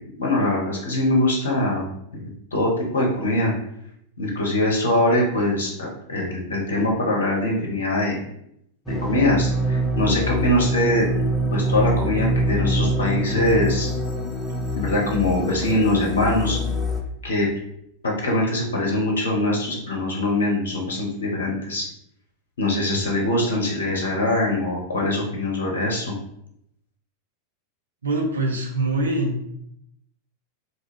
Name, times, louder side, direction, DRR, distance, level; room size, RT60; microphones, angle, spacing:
voice 1, 0.2-1.9 2.5-3.5 4.2-8.2 9.0-11.1 11.5-13.9 14.7-16.6 17.2-17.5 18.0-21.8 22.6-26.1, left 1 dB, 65° left, -2 dB, 0.6 m, -22 dB
sound 1, 8.9-17.0, equal, 5° left, 0.4 m, -25 dB
voice 2, 28.0-29.5, right 2 dB, 70° right, 0 dB, 0.5 m, -24 dB
2.4 x 2.2 x 3.2 m, 0.74 s
figure-of-eight pair, 90°, 0 cm